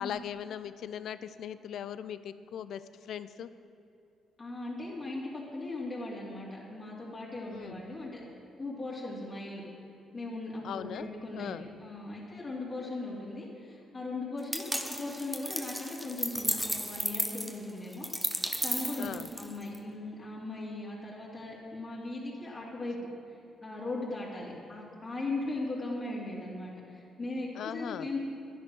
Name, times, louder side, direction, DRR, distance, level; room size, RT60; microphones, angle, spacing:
voice 1, 0.0-3.5 7.5-7.8 10.6-11.1 11.3-11.7 19.0-19.3 27.6-28.1, left 9 dB, 70° left, 14 dB, 0.5 m, -39 dB
voice 2, 4.4-8.2 8.6-9.6 10.1-18.1 18.6-23.0 23.6-28.2, left 2 dB, 35° left, -7 dB, 2.8 m, -38 dB
sound 1, 14.5-19.8, equal, ahead, 0.8 m, -34 dB
11.0 x 11.0 x 6.3 m, 2.8 s
cardioid pair, 90°, 0 cm